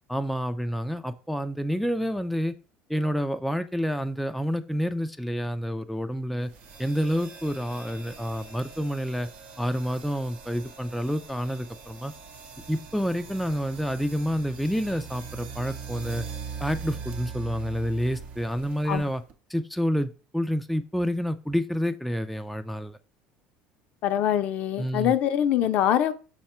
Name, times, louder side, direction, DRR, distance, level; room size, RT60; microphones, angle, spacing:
voice 1, 0.1-2.5 2.9-6.5 6.8-9.3 9.6-12.1 12.7-16.3 16.6-19.2 19.5-23.0 24.8-25.1, equal, ahead, 0.4 m, -28 dB
sound 1, 6.5-19.3, right 6 dB, 55° right, 0.7 m, -42 dB
voice 2, 24.0-26.1, left 10 dB, 60° left, 0.5 m, -24 dB
5.7 x 2.2 x 4.3 m
supercardioid pair, 100°, 3 cm